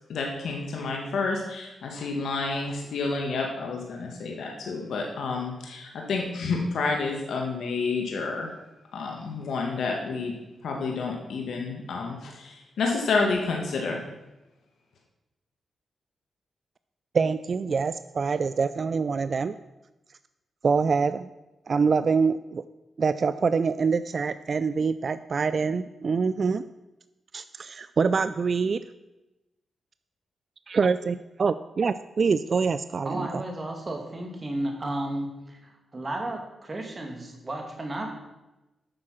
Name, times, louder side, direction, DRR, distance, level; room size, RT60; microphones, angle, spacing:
voice 1, 0.1-8.5 8.9-10.3 10.6-14.0, left 4 dB, 80° left, 1 dB, 1.4 m, -29 dB
voice 2, 17.1-19.5 20.6-21.3 21.7-22.6 23.0-26.6 27.3-28.8 30.7-33.4, right 5 dB, 50° right, 13 dB, 0.3 m, -25 dB
voice 3, 33.0-38.1, right 1 dB, 30° right, 2 dB, 2.3 m, -33 dB
8.6 x 6.5 x 5.8 m, 0.99 s
cardioid pair, 75°, 0 cm